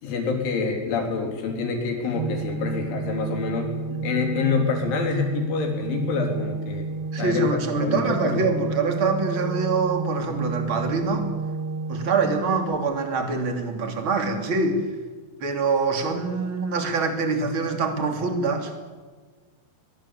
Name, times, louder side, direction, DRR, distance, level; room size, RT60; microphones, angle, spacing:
voice 1, 0.0-3.7 4.0-6.9 7.2-8.5, left 5 dB, 75° left, 2 dB, 6.2 m, -27 dB
Organ, 2.1-13.0, right 4 dB, 70° right, 1.8 m, -31 dB
voice 2, 7.1-11.3 11.9-14.8 15.4-18.7, right 4 dB, 30° right, 5 dB, 2.9 m, -25 dB
23.0 x 20.5 x 8.8 m, 1.4 s
omnidirectional pair, 5.5 m